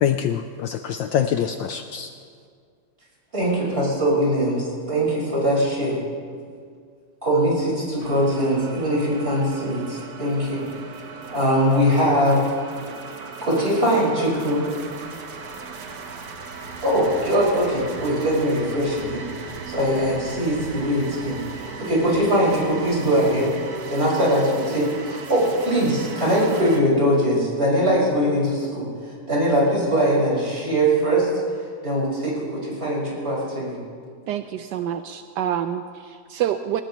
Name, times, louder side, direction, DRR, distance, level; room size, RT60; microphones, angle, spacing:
voice 1, 0.0-2.1, left 9 dB, 70° left, 7 dB, 1.2 m, -24 dB
voice 2, 3.3-6.0 7.2-10.6 11.3-12.5 13.4-14.7 16.8-19.2 19.7-23.5 23.9-28.9 29.3-31.3 31.8-33.8, equal, 25° right, -6 dB, 5.8 m, -21 dB
sound 1, 8.0-26.8, right 4 dB, 55° right, 1.4 m, -38 dB
voice 3, 34.3-36.8, right 10 dB, 80° right, 8 dB, 1.0 m, -27 dB
22.0 x 19.0 x 3.1 m, 2.1 s
omnidirectional pair, 2.4 m